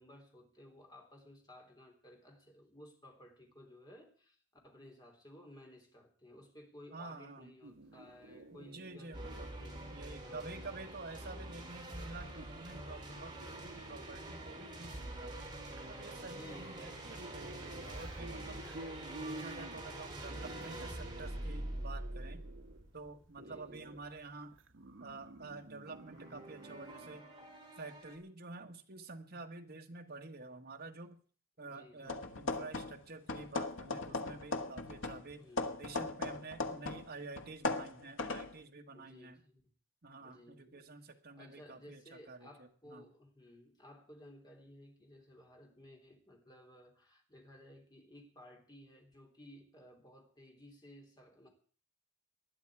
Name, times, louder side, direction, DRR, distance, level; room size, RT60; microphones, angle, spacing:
voice 1, 0.0-9.8 10.2-10.5 16.2-17.0 23.4-23.9 29.3-29.4 31.6-32.2 35.4-36.0 38.8-39.7 40.2-40.9 41.3-51.5, left 1 dB, 20° left, 2 dB, 3.4 m, -57 dB
voice 2, 6.9-7.5 8.5-9.5 9.9-13.4 13.6-15.4 15.8-18.6 19.2-22.4 22.9-24.6 25.0-27.3 27.8-31.2 31.6-35.5 35.8-39.4 40.0-43.0, right 3 dB, 50° right, 4 dB, 1.6 m, -49 dB
sound 1, 7.6-27.2, right 1 dB, 70° right, 1.0 m, -53 dB
sound 2, 9.1-24.1 25.9-28.2, right 1 dB, 20° right, 3.9 m, -46 dB
sound 3, 32.1-33.0 33.3-37.1 37.4-38.5, left 2 dB, 70° left, 1.2 m, -38 dB
19.5 x 11.5 x 4.9 m, 0.43 s
head